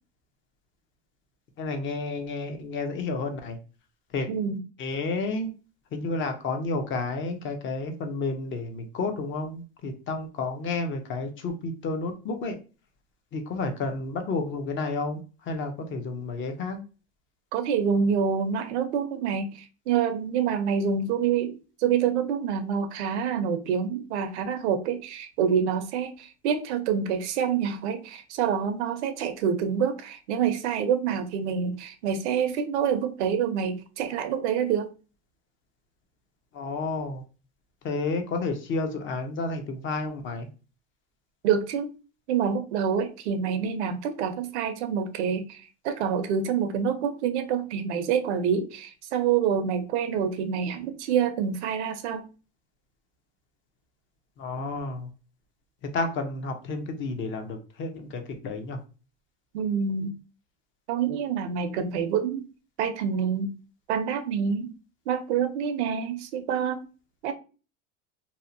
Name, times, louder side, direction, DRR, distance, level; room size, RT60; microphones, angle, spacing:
voice 1, 1.6-3.6 4.1-4.3 4.8-5.5 5.9-12.6 13.3-16.8 36.5-37.2 37.8-40.5 54.4-55.1 55.9-58.8, left 3 dB, 35° left, 0.6 m, -31 dB
voice 2, 4.3-4.6 17.5-19.5 19.9-34.9 41.4-41.9 42.3-45.6 45.8-52.3 59.5-60.1 60.9-62.4 62.8-63.5 63.9-64.7 65.1-66.9 67.2-67.3, right 7 dB, 80° right, 0.6 m, -27 dB
2.7 x 2.1 x 2.6 m
supercardioid pair, 105°, 34 cm